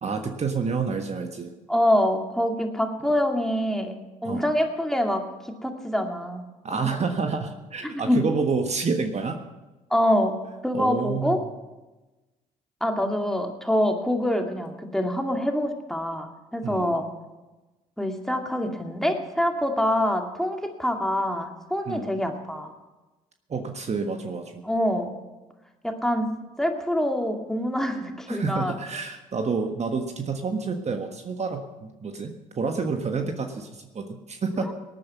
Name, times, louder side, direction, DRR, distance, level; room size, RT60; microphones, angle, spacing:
voice 1, 0.0-1.5 4.2-4.5 6.6-9.4 10.7-11.4 16.6-17.0 21.9-22.1 23.5-24.6 28.3-34.7, right 4 dB, 40° right, 5 dB, 1.5 m, -29 dB
voice 2, 1.7-6.4 7.8-8.2 9.9-10.4 10.6-11.4 12.8-17.1 18.0-22.7 24.6-25.1 25.8-26.3 26.6-28.8 34.6-34.7, left 1 dB, ahead, 3 dB, 2.3 m, -25 dB
18.5 x 9.4 x 5.8 m, 1.1 s
hypercardioid pair, 55°, 17 cm